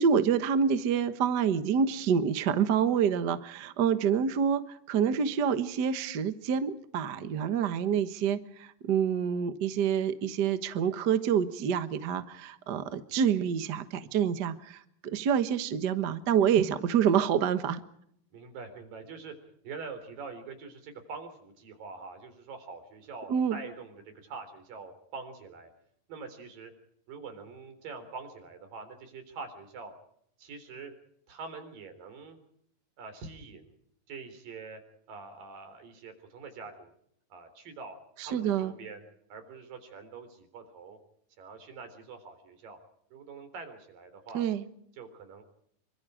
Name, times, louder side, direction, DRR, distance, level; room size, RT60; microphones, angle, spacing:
voice 1, 0.0-4.6 4.9-17.8 23.3-23.6 38.2-38.7 44.3-44.6, right 7 dB, 60° right, 11 dB, 1.0 m, -27 dB
voice 2, 18.3-19.3 19.6-25.7 26.1-26.7 27.1-29.9 30.4-30.9 31.3-32.4 33.0-33.7 34.1-34.8 35.1-36.9 37.3-39.0 39.3-41.0 41.4-42.8 43.1-44.4 44.9-45.4, right 4 dB, 80° right, 8 dB, 5.5 m, -44 dB
26.5 x 24.5 x 5.0 m, 0.71 s
omnidirectional pair, 3.9 m